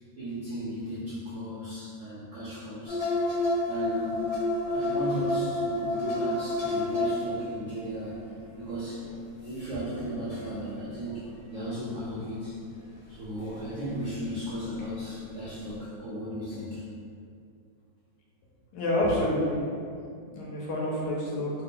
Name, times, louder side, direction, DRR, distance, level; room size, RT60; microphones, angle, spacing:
voice 1, 0.2-3.1 3.6-4.3 4.7-8.2 8.6-9.0 9.4-12.6 13.1-16.8, equal, 75° right, -9 dB, 0.7 m, -36 dB
sound 1, 2.9-7.6 7.9-8.4 8.6-10.6 11.3-11.5 13.3-13.7 14.0-14.1 14.8-15.3 15.7-15.8, left 2 dB, 55° left, 0.6 m, -29 dB
voice 2, 18.7-19.6 20.3-21.5, left 1 dB, 75° left, -4 dB, 1.2 m, -28 dB
3.1 x 2.2 x 3.6 m, 2.4 s
omnidirectional pair, 2.0 m